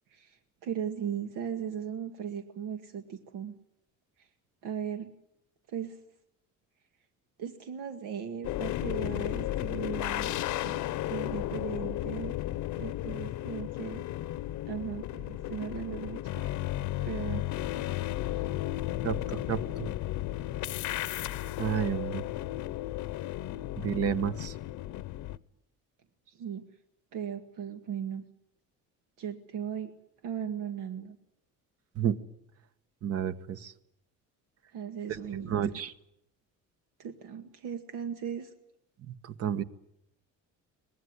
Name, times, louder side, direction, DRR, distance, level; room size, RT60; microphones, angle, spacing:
voice 1, 0.1-3.5 4.2-4.3 4.6-5.1 5.7-6.0 7.4-10.4 10.6-12.4 12.8-14.0 14.7-16.5 17.0-17.4 18.3-18.5 26.3-26.7 27.1-28.2 29.2-29.9 30.2-31.2 34.7-35.7 37.0-38.5, right 8 dB, 80° right, 6 dB, 2.0 m, -37 dB
sound 1, 8.4-25.4, left 14 dB, 65° left, 0.9 m, -34 dB
voice 2, 19.5-19.9 21.6-22.2 23.8-24.5 32.0-32.2 33.0-33.7 35.5-35.9 39.1-39.2 39.4-39.6, right 9 dB, 50° right, 13 dB, 1.3 m, -30 dB
24.0 x 20.5 x 9.7 m, 0.81 s
cardioid pair, 140°, 32 cm